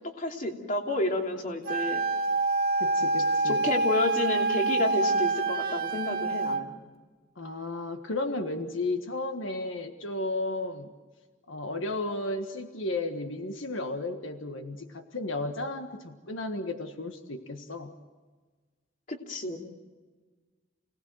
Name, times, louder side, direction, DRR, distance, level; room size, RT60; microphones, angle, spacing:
voice 1, 0.2-2.1 3.4-6.8 19.1-19.6, left 2 dB, 45° left, 2 dB, 2.9 m, -30 dB
Wind instrument woodwind instrument, 1.7-6.6, right 3 dB, 50° right, 1.7 m, -26 dB
voice 2, 2.8-3.6 7.4-10.9 11.5-17.9, left 2 dB, 85° left, 6 dB, 1.5 m, -33 dB
29.0 x 18.5 x 7.8 m, 1.4 s
head